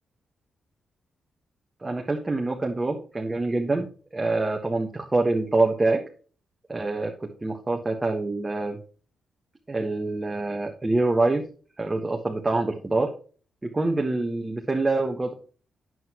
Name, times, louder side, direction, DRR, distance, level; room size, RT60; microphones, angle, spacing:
voice 1, 1.8-3.9 4.1-6.0 6.7-8.8 9.7-11.5 11.8-13.1 13.6-15.3, right 2 dB, 20° right, 1 dB, 1.3 m, -25 dB
9.2 x 7.8 x 3.0 m, 0.39 s
cardioid pair, 85°, 0 cm